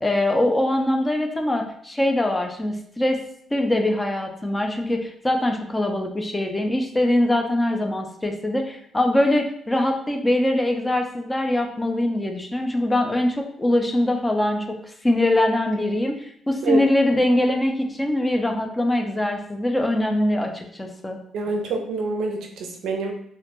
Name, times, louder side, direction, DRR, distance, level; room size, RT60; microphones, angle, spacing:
voice 1, 0.0-3.2 3.5-14.8 15.0-21.2, left 1 dB, 15° left, 3 dB, 0.4 m, -22 dB
voice 2, 21.3-23.1, right 3 dB, 75° right, 2 dB, 0.4 m, -26 dB
2.1 x 2.1 x 2.9 m, 0.68 s
cardioid pair, 90°, 0 cm